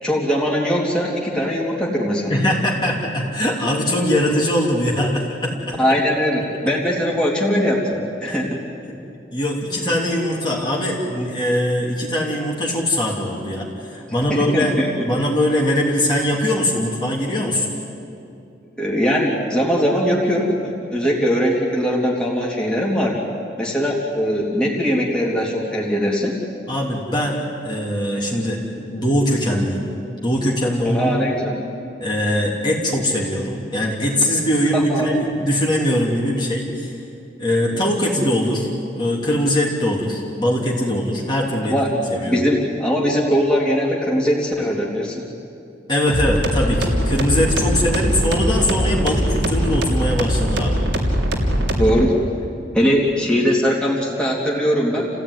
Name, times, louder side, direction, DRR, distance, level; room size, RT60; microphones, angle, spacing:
voice 1, 0.0-2.4 5.8-7.8 8.2-8.6 14.3-14.9 18.8-23.2 23.6-26.3 30.8-31.6 34.7-35.1 37.7-37.8 41.7-41.9 42.3-45.2 51.8-52.2 52.7-55.1, equal, 5° left, -4 dB, 3.2 m, -20 dB
voice 2, 2.3-5.8 8.3-8.4 8.9-9.0 9.3-14.8 15.0-17.7 26.7-29.9 30.2-31.5 32.0-36.9 37.4-41.7 42.1-42.4 45.9-50.8, left 1 dB, 25° left, -2 dB, 3.1 m, -21 dB
sound 1, 46.1-52.0, equal, 80° right, 3.2 m, -21 dB
29.0 x 16.0 x 9.8 m, 2.6 s
head